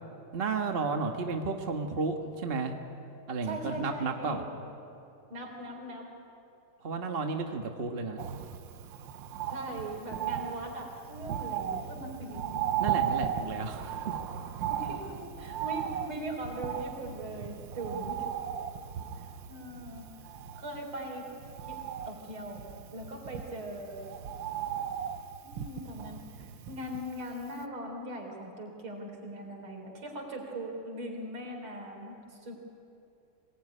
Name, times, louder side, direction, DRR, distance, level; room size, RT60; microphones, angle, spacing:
voice 1, 0.3-2.7 3.3-4.4 6.8-8.2 12.8-14.2, right 4 dB, 30° right, 4 dB, 1.5 m, -32 dB
voice 2, 3.4-4.6 5.3-6.1 9.5-12.7 13.3-13.5 14.7-18.3 19.2-20.1 20.5-21.3 21.7-24.1 25.4-32.6, right 1 dB, 90° right, 1 dB, 4.7 m, -40 dB
Bird, 8.2-27.3 27.6-27.7, right 9 dB, 70° right, 1.6 m, -36 dB
25.0 x 21.0 x 10.0 m, 2.7 s
omnidirectional pair, 2.3 m